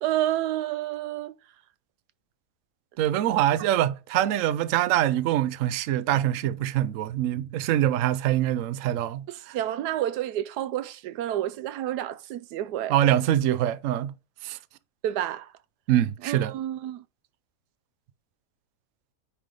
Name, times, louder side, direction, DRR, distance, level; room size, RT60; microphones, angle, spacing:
voice 1, 0.0-1.3 9.3-13.0 15.0-15.5 16.2-17.0, right 12 dB, 85° right, 1.1 m, -29 dB
voice 2, 3.0-9.6 12.9-14.1 14.4-14.6 15.9-16.5, right 12 dB, 65° right, 0.9 m, -24 dB
9.7 x 3.4 x 3.7 m
omnidirectional pair, 1.7 m